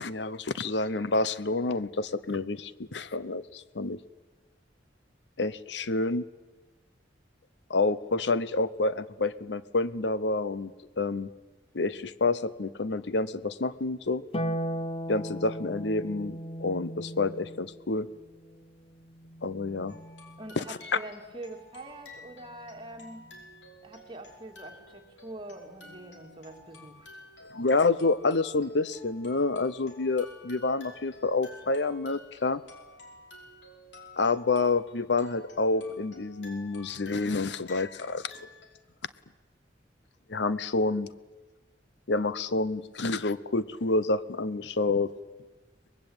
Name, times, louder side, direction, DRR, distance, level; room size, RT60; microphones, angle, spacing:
voice 1, 0.0-4.0 5.4-6.2 7.7-10.7 11.0-11.3 11.7-14.2 15.1-18.1 19.4-20.0 20.6-20.8 27.5-32.6 34.2-38.4 40.3-41.1 42.1-45.1, left 3 dB, 65° left, 16 dB, 0.8 m, -28 dB
Harp, 14.3-20.8 22.5-23.5, equal, 35° left, 1.2 m, -38 dB
sound 1, 19.9-38.7, left 2 dB, 90° left, 5.3 m, -51 dB
voice 2, 20.4-23.3 23.8-27.2, right 1 dB, 30° right, 3 dB, 2.8 m, -44 dB
24.0 x 21.0 x 8.9 m, 1.2 s
head